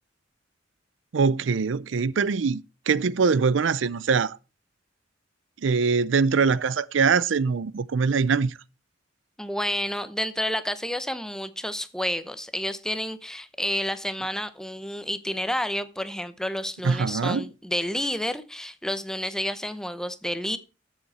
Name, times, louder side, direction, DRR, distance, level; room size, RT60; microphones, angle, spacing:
voice 1, 1.1-4.4 5.6-8.5 16.8-17.5, right 5 dB, 80° right, 0.5 m, -23 dB
voice 2, 9.4-20.6, equal, 5° left, 0.8 m, -30 dB
13.0 x 7.6 x 4.2 m
head